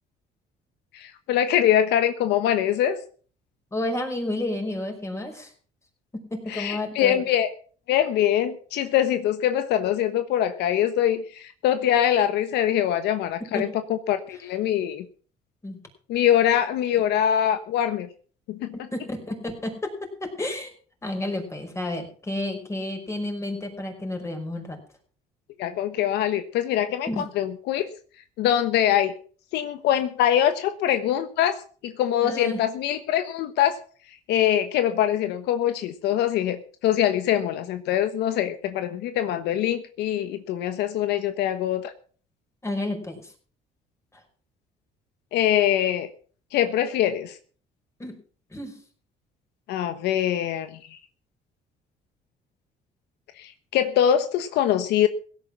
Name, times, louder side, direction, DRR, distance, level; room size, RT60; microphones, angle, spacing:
voice 1, 0.9-3.0 6.5-7.5 7.9-15.0 16.1-18.1 18.5-18.7 25.6-27.9 28.4-29.1 29.5-33.8 34.3-41.9 45.3-46.1 46.5-47.3 49.7-50.7 53.4-55.1, left 10 dB, 85° left, 10 dB, 1.2 m, -23 dB
voice 2, 3.7-5.5 6.1-7.2 13.5-13.7 15.6-15.8 16.9-17.0 18.9-20.7 21.0-24.8 27.1-27.3 32.2-32.6 42.6-43.3 44.1-44.2 48.0-48.2 48.5-48.8, left 1 dB, 15° left, 3 dB, 5.3 m, -31 dB
16.5 x 9.0 x 5.9 m, 0.42 s
cardioid pair, 110°, 17 cm